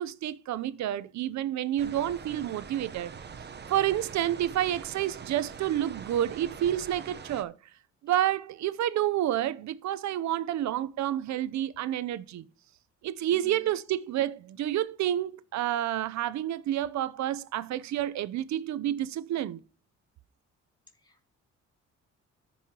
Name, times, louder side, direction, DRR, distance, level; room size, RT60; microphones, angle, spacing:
voice 1, 0.0-3.1 3.7-7.5 8.0-12.4 13.0-19.6, right 12 dB, 65° right, 0.6 m, -29 dB
sound 1, 1.8-7.4, right 6 dB, 35° right, 0.8 m, -44 dB
voice 2, 13.3-13.8 20.9-21.3, left 1 dB, 15° left, 2.8 m, -54 dB
14.0 x 5.6 x 2.9 m
cardioid pair, 90°, 30 cm